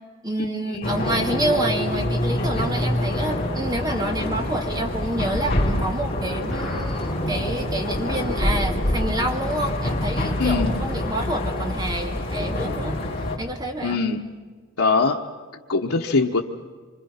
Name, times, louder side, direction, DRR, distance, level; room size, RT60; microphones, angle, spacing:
voice 1, 0.2-13.0 13.4-14.0, right 1 dB, 20° right, 3 dB, 2.1 m, -28 dB
sound 1, 0.8-13.4, left 1 dB, 25° left, 3.9 m, -26 dB
sound 2, 6.5-11.5, left 1 dB, ahead, 5.5 m, -39 dB
voice 2, 10.4-10.7 13.8-14.2 14.8-15.2 15.7-16.4, left 4 dB, 90° left, 0 dB, 1.2 m, -22 dB
26.5 x 25.5 x 5.8 m, 1.5 s
head